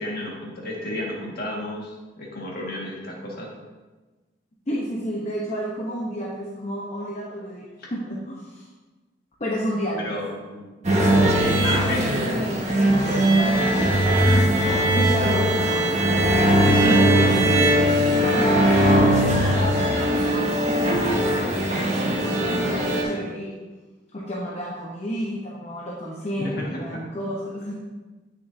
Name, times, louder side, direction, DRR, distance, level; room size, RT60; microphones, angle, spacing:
voice 1, 0.0-3.5 7.8-7.9 10.0-10.7 11.6-12.2 15.1-15.5 26.4-27.0, left 1 dB, 60° left, -3 dB, 1.8 m, -32 dB
voice 2, 4.7-8.7 9.4-10.2 11.0-11.6 11.9-12.6 12.9-14.2 14.9-15.9 16.6-17.8 18.1-23.5 24.1-27.7, equal, 40° left, -4 dB, 0.9 m, -31 dB
sound 1, 10.8-23.0, right 1 dB, 40° right, 1.4 m, -20 dB
8.4 x 6.9 x 2.7 m, 1.2 s
head